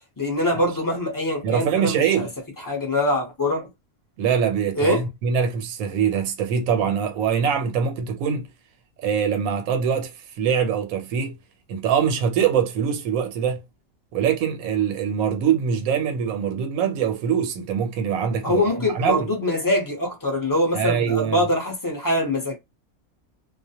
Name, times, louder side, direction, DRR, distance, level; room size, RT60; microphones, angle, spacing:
voice 1, 0.2-2.3 2.6-3.7 4.8-5.0 18.4-22.5, left 1 dB, 20° left, 0.5 m, -23 dB
voice 2, 1.4-2.3 4.2-8.5 9.0-10.1 10.4-11.4 11.7-13.6 14.1-18.6 18.9-19.3 20.7-21.5, right 7 dB, 80° right, 1.0 m, -23 dB
2.4 x 2.1 x 2.7 m
omnidirectional pair, 1.5 m